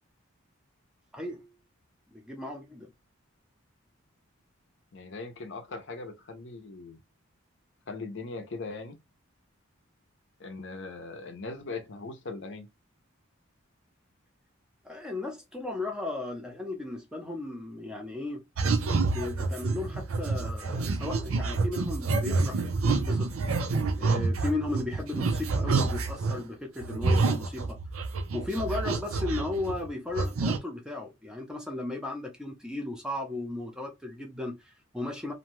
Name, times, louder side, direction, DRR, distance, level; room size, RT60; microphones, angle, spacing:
voice 1, 1.1-1.5 2.1-2.9 14.8-18.4 19.0-23.3 24.0-27.8 28.3-35.3, left 2 dB, 5° right, 0.5 m, -35 dB
voice 2, 4.9-7.0 7.9-9.0 10.4-12.7, left 3 dB, 60° left, 0.6 m, -39 dB
sound 1, 18.6-26.4 26.8-29.9 30.1-30.6, right 3 dB, 80° right, 0.6 m, -28 dB
2.6 x 2.2 x 3.0 m
head